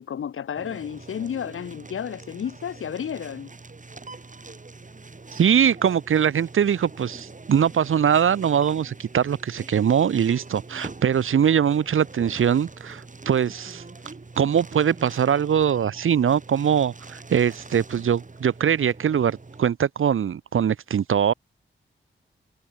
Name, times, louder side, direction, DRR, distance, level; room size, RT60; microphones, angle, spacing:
voice 1, 0.0-3.5, left 8 dB, 90° left, 2.1 m, -32 dB
sound 1, 0.5-19.6, right 3 dB, 40° right, 5.7 m, -43 dB
voice 2, 5.3-13.8 14.4-21.3, right 8 dB, 85° right, 1.5 m, -22 dB
cardioid pair, 55°, 21 cm